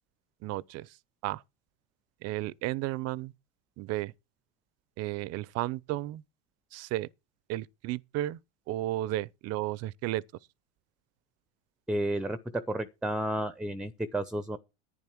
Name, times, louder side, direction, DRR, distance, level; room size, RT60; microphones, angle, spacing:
voice 1, 0.4-0.9 1.2-1.4 2.2-3.3 3.8-4.1 5.0-6.2 6.7-7.1 7.5-8.4 8.7-10.2, right 16 dB, 50° right, 0.7 m, -33 dB
voice 2, 11.9-14.6, right 1 dB, ahead, 0.7 m, -32 dB
11.0 x 9.8 x 4.6 m
supercardioid pair, 110°, 32 cm